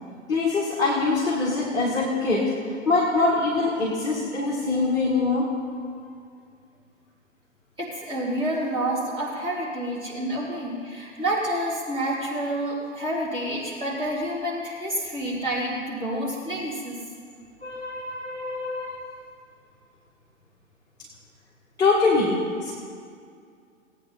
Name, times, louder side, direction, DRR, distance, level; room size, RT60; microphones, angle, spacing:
voice 1, 0.3-2.5 2.9-5.5 5.8-5.9 10.1-10.2 17.6-19.1 21.8-22.7, left 3 dB, 10° left, -7 dB, 2.1 m, -24 dB
voice 2, 7.8-17.0, right 1 dB, 15° right, -7 dB, 3.8 m, -28 dB
18.5 x 9.3 x 4.3 m, 2.2 s
figure-of-eight pair, 120°, 39 cm